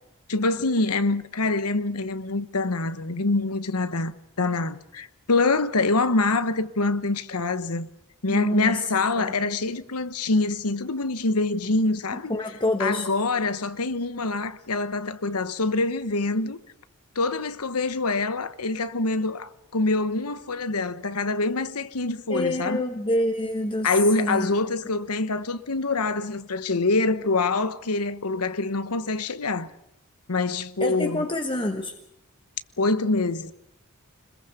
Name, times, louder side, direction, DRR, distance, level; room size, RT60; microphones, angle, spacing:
voice 1, 0.3-7.9 8.2-12.3 12.8-16.6 17.1-22.8 23.8-29.7 30.3-31.2 32.8-33.5, left 3 dB, 85° left, 1.2 m, -25 dB
voice 2, 8.3-8.8 9.2-9.5 12.3-13.1 22.3-23.9 24.2-24.5 30.8-31.9, left 1 dB, 25° left, 1.4 m, -27 dB
26.0 x 21.5 x 6.9 m
head